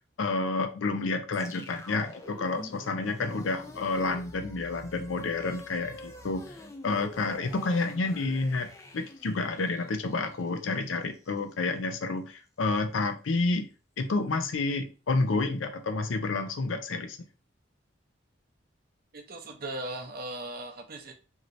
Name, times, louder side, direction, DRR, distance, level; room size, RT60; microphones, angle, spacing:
voice 1, 0.2-6.4 6.8-13.7 14.0-17.2, left 3 dB, 85° left, 0.5 m, -29 dB
sound 1, 1.3-11.5, left 2 dB, 15° left, 0.3 m, -46 dB
voice 2, 19.1-21.1, right 1 dB, 50° right, 0.6 m, -38 dB
3.1 x 2.8 x 2.5 m
head